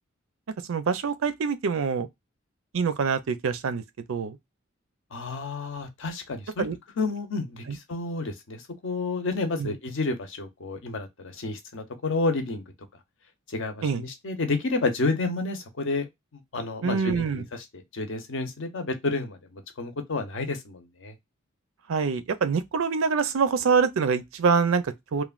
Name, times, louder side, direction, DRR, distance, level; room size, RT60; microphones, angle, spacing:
voice 1, 0.7-2.1 2.7-3.8 4.1-4.4 6.6-6.8 7.7-7.8 9.6-9.7 13.8-14.0 16.8-17.4 21.9-25.2, right 5 dB, 70° right, 0.5 m, -25 dB
voice 2, 5.1-6.7 7.0-12.6 13.5-21.1, left 3 dB, 65° left, 0.7 m, -30 dB
3.1 x 2.2 x 2.3 m
head